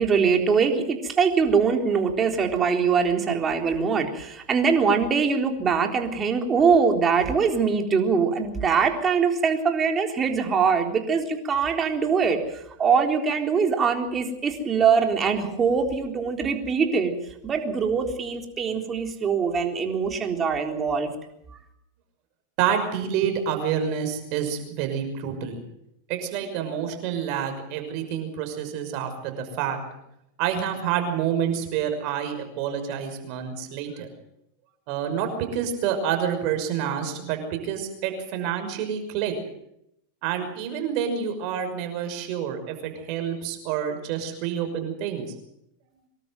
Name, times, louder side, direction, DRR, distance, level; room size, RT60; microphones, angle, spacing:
voice 1, 0.0-17.1 17.4-21.1, right 5 dB, 25° right, 4 dB, 3.8 m, -23 dB
voice 2, 22.6-25.6 26.1-29.8 30.4-34.1 34.9-39.4 40.2-45.2, right 8 dB, 50° right, 6 dB, 5.9 m, -28 dB
24.5 x 13.0 x 9.3 m, 0.79 s
hypercardioid pair, 125°, 0 cm